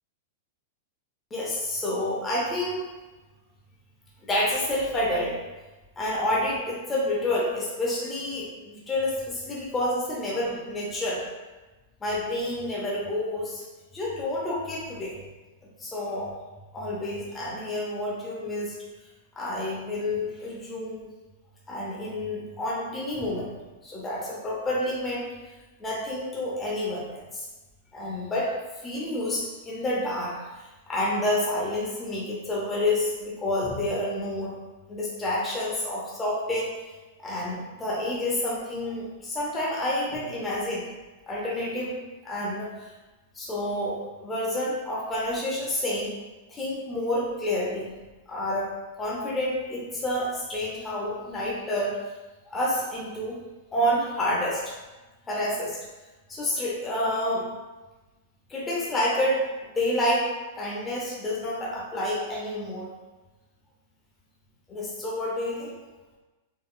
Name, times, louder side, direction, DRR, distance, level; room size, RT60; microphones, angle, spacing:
voice 1, 1.3-2.8 4.2-5.3 6.0-11.2 12.0-13.6 13.9-15.2 15.8-16.3 16.7-18.8 19.4-21.1 21.7-23.5 23.8-25.2 25.8-27.5 27.9-28.5 28.8-30.4 30.9-34.5 34.9-36.7 37.2-40.9 41.3-42.0 42.2-42.9 43.3-46.1 46.5-47.9 48.3-48.7 49.0-51.9 52.5-53.4 53.7-54.7 55.3-55.8 56.3-57.5 58.5-59.4 59.7-60.3 60.6-62.9 64.7-65.7, left 1 dB, 10° left, -6 dB, 0.6 m, -29 dB
3.6 x 2.3 x 2.2 m, 1.2 s
supercardioid pair, 165°, 0 cm